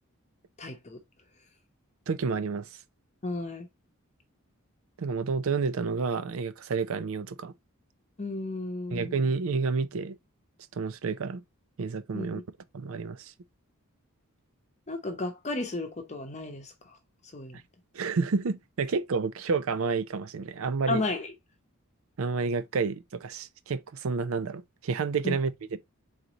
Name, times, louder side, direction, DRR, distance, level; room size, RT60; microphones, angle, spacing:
voice 1, 0.6-1.0 3.2-3.7 8.2-9.1 12.1-12.4 14.9-17.0 17.3-17.6 20.9-21.3 25.2-25.3, left 2 dB, 30° left, 0.8 m, -33 dB
voice 2, 2.1-2.7 5.0-7.5 8.9-10.2 10.7-11.4 11.8-12.4 12.7-13.3 17.5-17.6 17.9-21.0 22.2-25.8, right 4 dB, 65° right, 0.5 m, -30 dB
3.9 x 3.1 x 3.8 m
head